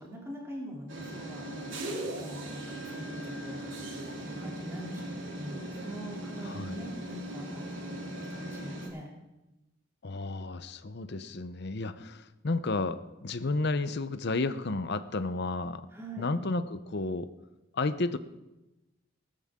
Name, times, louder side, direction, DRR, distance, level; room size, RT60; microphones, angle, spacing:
voice 1, 0.0-9.1 15.9-16.3, right 1 dB, 15° right, -3 dB, 2.9 m, -44 dB
sound 1, 0.9-8.9, right 1 dB, 75° right, 3.1 m, -39 dB
voice 2, 6.4-6.8 10.0-15.9 16.2-17.3 17.7-18.2, left 3 dB, 60° left, 12 dB, 0.8 m, -32 dB
19.0 x 13.0 x 3.7 m, 1.0 s
head